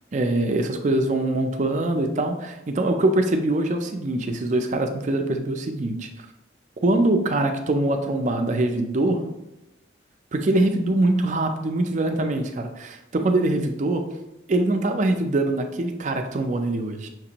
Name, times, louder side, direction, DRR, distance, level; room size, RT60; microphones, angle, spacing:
voice 1, 0.1-6.1 6.8-9.2 10.3-14.0 14.5-17.1, right 2 dB, 40° right, 5 dB, 0.4 m, -23 dB
5.9 x 2.5 x 2.9 m, 0.92 s
head